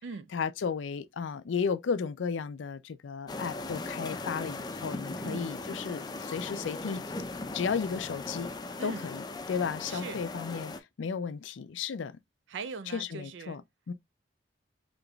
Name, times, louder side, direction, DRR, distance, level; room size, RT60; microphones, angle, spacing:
voice 1, 0.3-7.0 7.5-8.5 8.8-12.2 12.9-13.6 13.9-14.0, left 6 dB, 90° left, 0.4 m, -34 dB
sound 1, 3.3-10.8, left 2 dB, 20° left, 0.4 m, -38 dB
voice 2, 9.9-10.2 12.5-13.6, right 4 dB, 80° right, 0.4 m, -40 dB
5.1 x 2.9 x 2.2 m
head